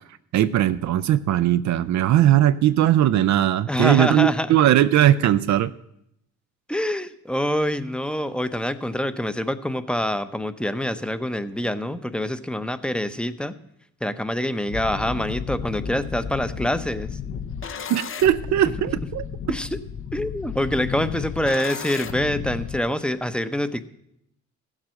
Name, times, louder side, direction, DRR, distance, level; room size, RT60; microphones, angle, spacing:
voice 1, 0.3-5.7 17.9-19.2, right 12 dB, 70° right, 12 dB, 0.5 m, -19 dB
voice 2, 3.7-4.5 6.7-13.6 14.0-17.1 19.5-19.8 20.1-23.8, left 1 dB, 5° left, 12 dB, 0.8 m, -26 dB
sound 1, 14.7-22.8, left 7 dB, 45° left, 0.9 m, -33 dB
15.0 x 7.5 x 6.3 m, 0.76 s
cardioid pair, 90°, 30 cm